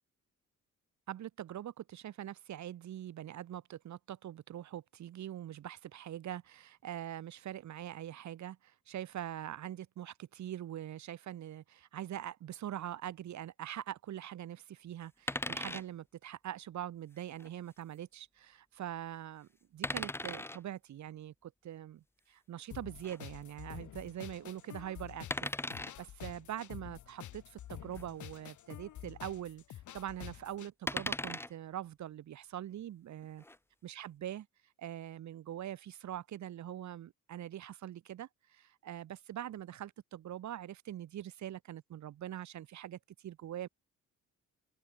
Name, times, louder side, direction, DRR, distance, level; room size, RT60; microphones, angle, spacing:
voice 1, 1.1-33.4 33.8-34.5 34.8-43.7, right 11 dB, 65° right, 2.1 m, -43 dB
sound 1, 15.3-15.8 17.3-17.5 19.8-20.6 23.0-23.2 25.3-25.9 27.9-28.1 28.3-28.4 30.9-31.5 33.2-33.6, left 1 dB, 10° left, 1.6 m, -37 dB
sound 2, 22.7-30.7, left 12 dB, 75° left, 5.9 m, -49 dB
cardioid pair, 90°, 30 cm